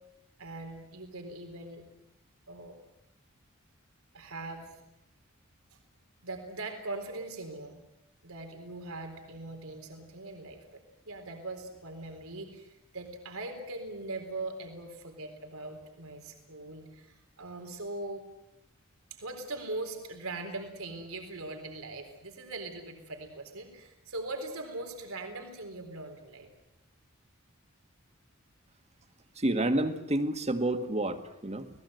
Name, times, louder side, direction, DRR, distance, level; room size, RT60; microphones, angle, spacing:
voice 1, 0.4-1.8 2.5-2.8 4.1-4.8 5.7-5.8 6.2-7.8 8.2-18.2 19.1-26.5, right 2 dB, 90° right, 5 dB, 4.0 m, -41 dB
voice 2, 29.4-31.7, right 1 dB, 30° right, 7 dB, 1.8 m, -29 dB
28.5 x 19.5 x 7.9 m, 0.84 s
head